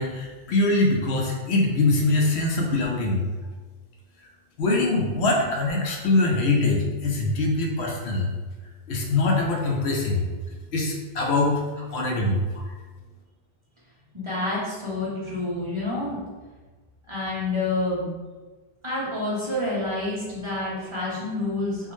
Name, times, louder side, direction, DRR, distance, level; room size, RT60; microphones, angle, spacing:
voice 1, 0.0-3.4 4.6-8.3 8.9-10.2 10.7-11.6 11.9-12.4, left 2 dB, 75° left, 0 dB, 0.9 m, -23 dB
voice 2, 14.1-16.2 17.1-18.1 18.8-21.9, left 2 dB, 30° right, -7 dB, 0.7 m, -28 dB
3.6 x 2.1 x 3.0 m, 1.3 s
omnidirectional pair, 1.1 m